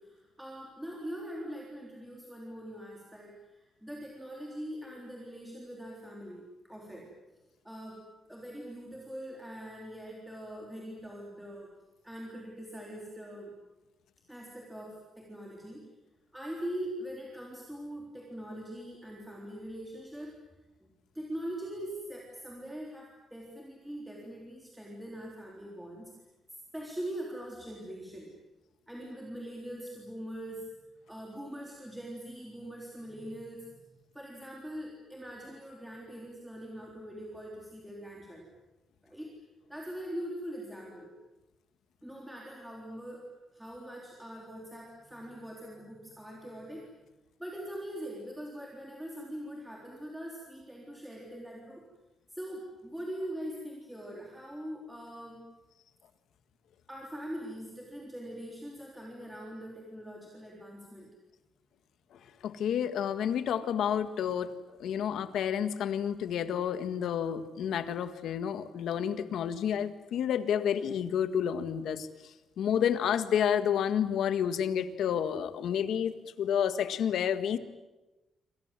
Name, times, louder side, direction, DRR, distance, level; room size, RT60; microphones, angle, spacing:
voice 1, 0.0-7.1 7.6-11.8 12.0-13.5 14.3-15.9 16.3-20.4 20.8-20.9 21.1-26.1 26.7-28.3 28.9-30.7 31.1-33.9 34.1-38.5 39.0-39.4 39.7-41.1 42.0-43.2 43.5-46.9 47.4-51.8 52.3-55.4 56.9-61.1, equal, 5° right, -2 dB, 3.8 m, -42 dB
voice 2, 62.1-64.5 64.8-77.6, left 8 dB, 70° left, 11 dB, 1.8 m, -30 dB
27.5 x 26.5 x 7.7 m, 1.1 s
cardioid pair, 170°, 0 cm